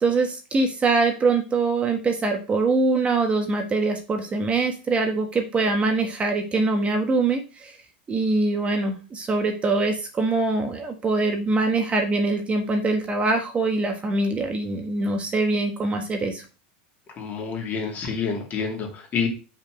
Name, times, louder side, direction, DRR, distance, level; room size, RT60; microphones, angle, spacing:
voice 1, 0.0-7.7 8.1-16.4, right 3 dB, 25° right, 4 dB, 1.4 m, -23 dB
voice 2, 17.2-19.3, left 5 dB, 35° left, 2 dB, 2.7 m, -28 dB
5.9 x 4.2 x 6.3 m, 0.32 s
supercardioid pair, 115°, 5 cm